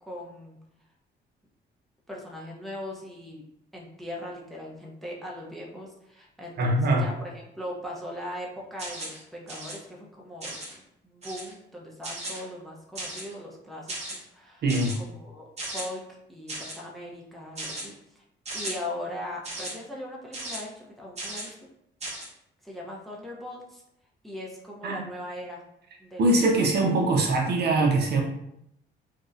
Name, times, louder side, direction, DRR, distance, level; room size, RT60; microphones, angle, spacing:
voice 1, 0.0-0.6 2.1-3.4 3.7-14.6 15.0-18.2 18.5-21.6 22.6-23.8 24.2-25.6 26.0-26.4, left 1 dB, ahead, -3 dB, 0.5 m, -39 dB
voice 2, 6.6-7.1 14.6-15.0 24.8-25.1 26.2-28.2, right 2 dB, 55° right, 0 dB, 0.5 m, -22 dB
sound 1, 8.8-9.2 9.5-9.8 10.4-10.7 11.2-11.5 12.0-12.4 13.0-13.3 13.9-14.2 14.7-15.0 15.6-15.9 16.5-16.8 17.6-17.9 18.5-18.7 19.4-19.7 20.3-20.6 21.2-21.5 22.0-22.3, right 1 dB, 35° right, 0.8 m, -36 dB
2.6 x 2.0 x 2.4 m, 0.79 s
cardioid pair, 90°, 20 cm